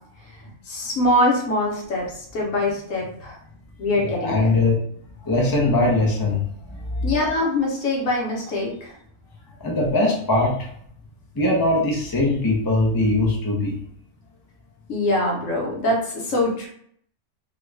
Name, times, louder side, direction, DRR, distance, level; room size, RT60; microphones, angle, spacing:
voice 1, 0.7-3.4 3.8-4.5 7.0-8.9 14.9-16.7, left 1 dB, 60° left, -2 dB, 1.2 m, -23 dB
voice 2, 4.0-4.7 5.2-6.4 6.7-7.1 9.6-10.7 11.3-13.7, left 2 dB, 30° left, -3 dB, 0.4 m, -21 dB
3.0 x 2.4 x 3.2 m, 0.65 s
omnidirectional pair, 1.6 m